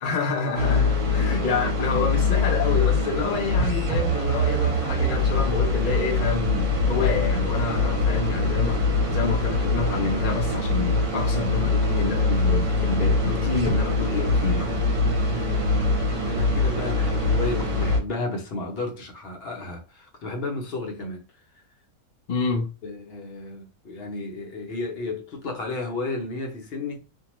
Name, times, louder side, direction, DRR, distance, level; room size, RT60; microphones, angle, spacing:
voice 1, 0.0-14.8 22.3-22.7, left 4 dB, 70° left, 0.4 m, -28 dB
sound 1, 0.5-18.0, left 2 dB, 65° right, 1.1 m, -23 dB
voice 2, 15.1-21.2 21.5-21.6 22.8-27.0, left 2 dB, 55° left, 0.8 m, -33 dB
2.6 x 2.2 x 2.9 m
omnidirectional pair, 1.5 m